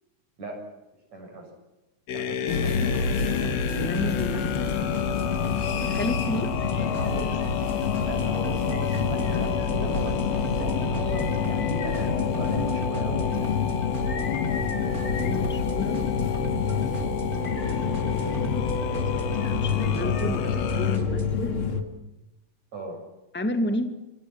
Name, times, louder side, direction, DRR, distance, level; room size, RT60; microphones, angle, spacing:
voice 1, 1.1-1.5 2.1-2.8 6.9-7.3 8.0-13.5 22.7-23.0, right 1 dB, 65° right, 2 dB, 8.7 m, -36 dB
sound 1, 2.1-21.0, left 8 dB, 65° left, 2.4 m, -32 dB
exit from motor train, 2.5-21.8, left 6 dB, 45° left, 3.0 m, -28 dB
sound 2, 2.8-21.3, right 1 dB, 30° right, 3.3 m, -37 dB
voice 2, 3.7-4.8 5.9-6.6 15.2-16.0 19.6-21.5 23.3-23.9, left 1 dB, 5° left, 7 dB, 1.9 m, -31 dB
28.5 x 24.0 x 6.1 m, 1.0 s
omnidirectional pair, 3.4 m